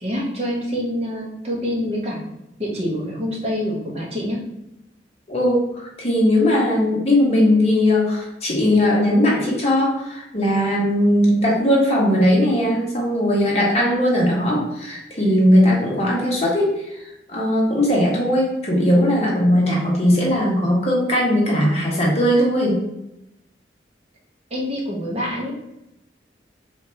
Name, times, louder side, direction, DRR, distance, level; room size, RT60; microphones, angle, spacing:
voice 1, 0.0-2.2 2.6-4.4 24.5-25.5, equal, 35° right, -3 dB, 1.0 m, -26 dB
voice 2, 5.3-22.8, left 1 dB, 35° left, -3 dB, 1.2 m, -19 dB
3.5 x 2.8 x 4.4 m, 0.87 s
head